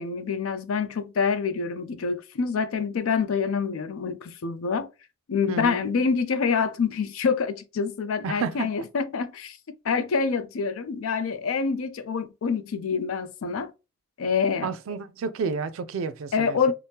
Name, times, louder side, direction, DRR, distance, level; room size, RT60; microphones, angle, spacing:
voice 1, 0.0-4.9 5.3-9.6 9.8-13.7 14.2-14.7 16.3-16.7, left 5 dB, 85° left, 0.4 m, -26 dB
voice 2, 5.5-5.8 8.2-8.7 14.6-16.6, right 5 dB, 75° right, 0.4 m, -30 dB
2.8 x 2.0 x 3.4 m
head